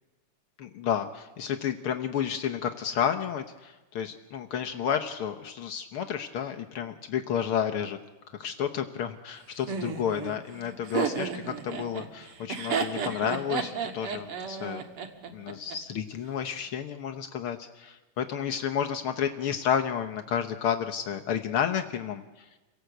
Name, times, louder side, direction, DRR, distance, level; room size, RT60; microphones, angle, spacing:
voice 1, 0.6-8.0 8.4-14.8 15.3-22.4, left 8 dB, 80° left, 6 dB, 1.2 m, -31 dB
Laughter, 9.7-15.8, right 6 dB, 50° right, 2.1 m, -32 dB
27.5 x 17.5 x 8.0 m, 1.1 s
omnidirectional pair, 3.8 m